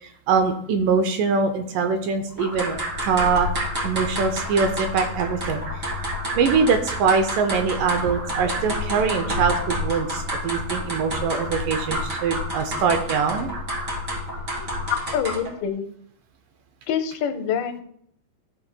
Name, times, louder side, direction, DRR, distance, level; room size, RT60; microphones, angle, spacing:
voice 1, 0.0-3.5 3.8-5.9 6.4-13.6, right 5 dB, 80° right, 7 dB, 2.1 m, -23 dB
sound 1, 2.4-15.6, equal, 30° right, 1.6 m, -29 dB
voice 2, 15.1-15.9 16.9-17.8, left 8 dB, 90° left, 7 dB, 2.7 m, -26 dB
14.0 x 6.0 x 2.2 m, 0.66 s
omnidirectional pair, 4.2 m